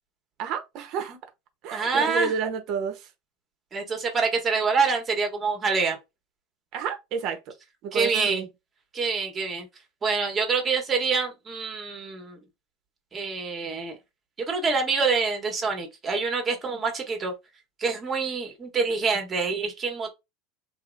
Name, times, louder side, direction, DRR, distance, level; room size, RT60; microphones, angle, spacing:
voice 1, 0.4-1.2 1.6-3.1 6.7-7.5 7.8-8.5, right 6 dB, 55° right, 0.9 m, -30 dB
voice 2, 1.7-2.3 3.7-6.0 7.9-8.5 8.9-9.7 10.0-12.4 13.1-14.0 14.4-17.3 17.8-20.1, right 4 dB, 25° right, 1.2 m, -26 dB
2.9 x 2.7 x 2.6 m
supercardioid pair, 115°, 0 cm